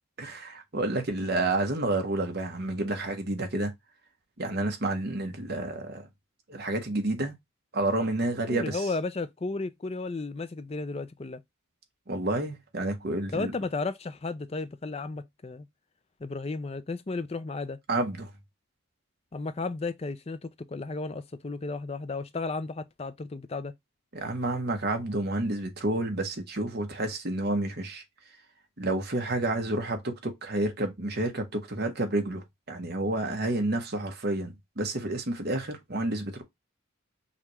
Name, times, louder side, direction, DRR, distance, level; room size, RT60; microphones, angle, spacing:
voice 1, 0.2-3.7 4.4-6.1 6.5-7.3 7.7-8.9 12.1-13.5 17.9-18.3 24.1-28.0 28.8-36.4, right 2 dB, 50° right, 1.1 m, -30 dB
voice 2, 8.5-11.4 13.3-15.7 16.2-17.8 19.3-23.7, left 3 dB, 30° left, 0.4 m, -34 dB
5.6 x 2.4 x 3.0 m
head